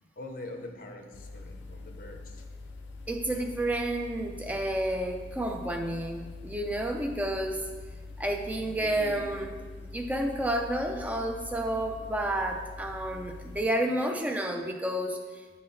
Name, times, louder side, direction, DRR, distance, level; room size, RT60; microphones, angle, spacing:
voice 1, 0.2-2.4 3.3-3.5 8.8-9.4, left 1 dB, 50° left, 3 dB, 0.6 m, -44 dB
sound 1, 1.1-13.6, left 3 dB, 90° left, 0.4 m, -44 dB
voice 2, 3.1-7.7 8.2-15.2, right 1 dB, 10° right, 3 dB, 0.4 m, -30 dB
9.8 x 3.8 x 2.6 m, 1.5 s
head